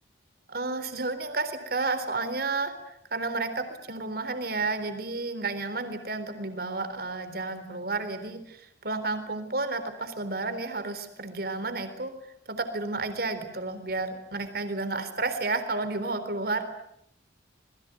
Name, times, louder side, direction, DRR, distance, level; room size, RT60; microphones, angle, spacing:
voice 1, 0.5-12.1 12.5-16.6, right 3 dB, 55° right, 10 dB, 3.9 m, -31 dB
27.0 x 22.0 x 9.3 m, 0.76 s
head